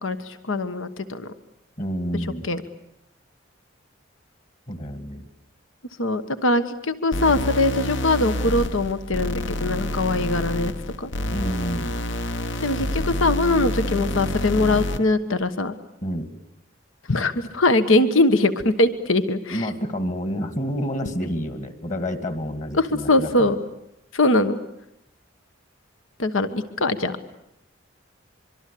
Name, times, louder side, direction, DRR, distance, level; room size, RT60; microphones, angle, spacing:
voice 1, 0.0-1.3 2.5-2.6 6.0-10.7 11.0-11.1 12.6-15.7 17.1-19.7 22.8-23.6 24.1-24.6 26.2-27.2, left 2 dB, 90° left, 11 dB, 1.3 m, -22 dB
voice 2, 1.8-2.5 4.7-5.3 11.3-11.9 16.0-16.3 19.5-23.5, equal, 40° left, 9 dB, 2.3 m, -29 dB
sound 1, 7.1-15.1, left 1 dB, 65° left, 1.2 m, -28 dB
24.5 x 24.0 x 8.5 m, 0.80 s
head